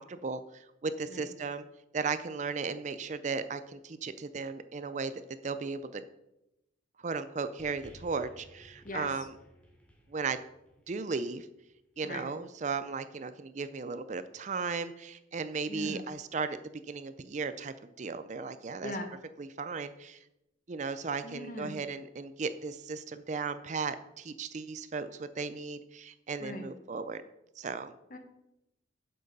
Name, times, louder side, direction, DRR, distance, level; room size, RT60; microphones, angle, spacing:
voice 1, 0.0-1.7 1.9-5.1 5.4-6.0 7.0-9.3 10.1-10.4 10.9-11.5 12.0-16.6 16.9-18.9 19.4-20.2 20.7-27.2 27.6-27.9, right 4 dB, 40° right, 12 dB, 0.4 m, -36 dB
sound 1, 7.6-12.1 13.0-13.1, equal, 5° left, 1.3 m, -58 dB
voice 2, 15.7-16.0 18.8-19.1 21.2-21.8 26.4-26.7 28.1-28.2, left 1 dB, 45° left, 6 dB, 1.2 m, -39 dB
7.9 x 7.7 x 5.3 m, 0.89 s
head